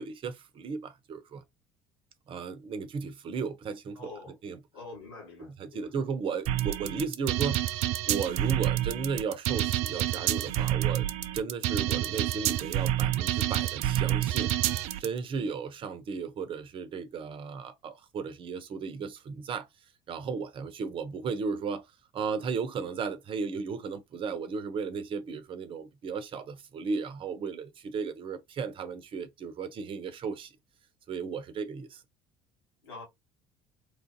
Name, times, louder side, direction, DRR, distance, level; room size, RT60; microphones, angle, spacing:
voice 1, 0.0-1.4 2.3-4.6 5.4-19.7 20.1-21.9 22.1-30.5 31.1-32.0, right 5 dB, 45° right, 0.8 m, -35 dB
voice 2, 4.0-4.3 4.7-5.9 32.8-33.0, left 3 dB, 85° left, 1.8 m, -45 dB
sound 1, 6.5-15.1, right 13 dB, 65° right, 0.4 m, -28 dB
3.2 x 2.5 x 2.8 m
hypercardioid pair, 65°, 12 cm